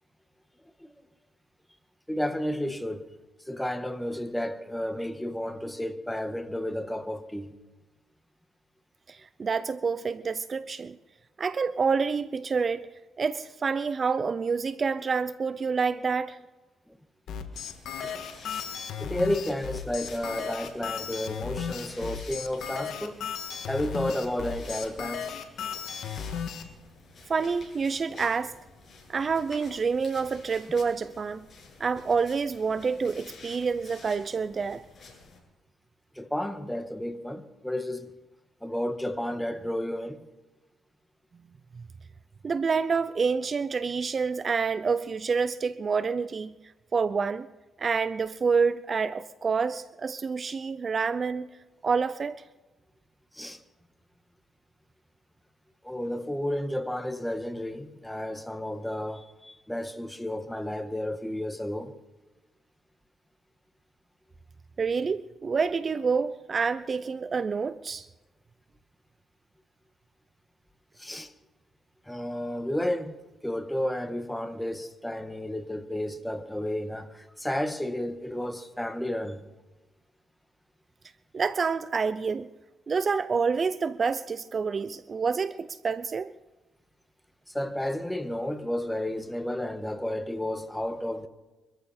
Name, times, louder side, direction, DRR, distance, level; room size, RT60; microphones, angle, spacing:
voice 1, 2.1-3.1 3.5-7.5 16.9-17.0 19.0-23.2 23.7-25.4 36.1-38.1 38.6-40.2 53.3-53.6 55.8-61.9 71.0-71.3 72.1-73.2 73.4-79.4 87.5-91.3, left 1 dB, 5° left, 1.5 m, -32 dB
voice 2, 9.1-11.0 11.4-12.9 13.2-16.4 27.3-28.5 29.1-31.5 31.8-34.9 41.8-41.9 42.4-46.6 46.9-47.5 47.8-51.5 51.8-52.4 64.8-68.1 81.3-82.5 82.9-86.3, right 5 dB, 40° right, 0.5 m, -28 dB
sound 1, 17.3-26.6, left 7 dB, 70° left, 1.8 m, -35 dB
sound 2, 17.5-35.4, left 3 dB, 40° left, 7.7 m, -50 dB
24.5 x 14.0 x 4.3 m
cardioid pair, 90°, 0 cm